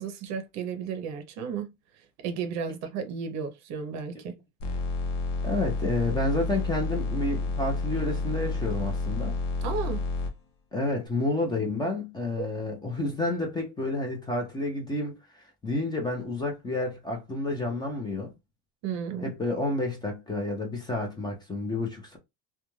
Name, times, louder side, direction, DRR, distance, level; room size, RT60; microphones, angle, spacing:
voice 1, 0.0-1.7 2.2-4.3 9.6-10.0 12.4-12.5 18.8-19.3, right 6 dB, 50° right, 0.7 m, -33 dB
sound 1, 4.6-10.3, left 3 dB, 70° left, 0.8 m, -30 dB
voice 2, 5.4-9.3 10.7-15.2 15.6-18.3 19.2-22.2, left 2 dB, 10° left, 0.6 m, -30 dB
2.4 x 2.3 x 3.0 m
cardioid pair, 145°, 35 cm